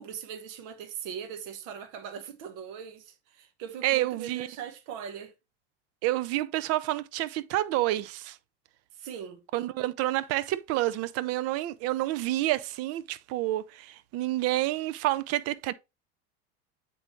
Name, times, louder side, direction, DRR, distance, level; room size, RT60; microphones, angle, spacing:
voice 1, 0.0-5.3 9.0-9.4, right 8 dB, 60° right, 1.1 m, -40 dB
voice 2, 3.8-4.5 6.0-8.4 9.5-15.7, right 16 dB, 45° right, 0.5 m, -29 dB
8.6 x 3.9 x 3.0 m
supercardioid pair, 120°, 33 cm